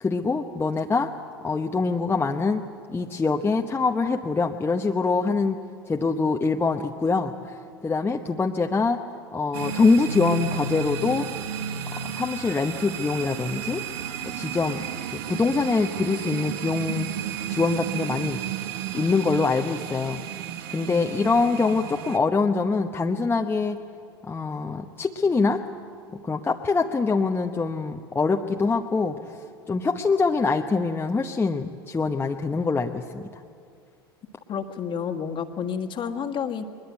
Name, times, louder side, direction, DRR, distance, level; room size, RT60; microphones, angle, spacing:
voice 1, 0.0-1.1 1.4-2.6 2.9-5.6 5.9-7.5 7.8-9.0 9.3-11.3 11.9-13.8 14.2-14.8 15.1-17.1 17.5-18.4 18.9-20.2 20.7-23.8 24.2-25.6 26.2-29.4 29.7-33.2, left 4 dB, 15° left, 2 dB, 1.0 m, -24 dB
sound 1, 9.5-22.2, right 8 dB, 65° right, 1.1 m, -33 dB
voice 2, 34.5-36.6, left 7 dB, 40° left, 6 dB, 1.7 m, -30 dB
22.0 x 21.0 x 8.3 m, 2.3 s
hypercardioid pair, 80°, 13 cm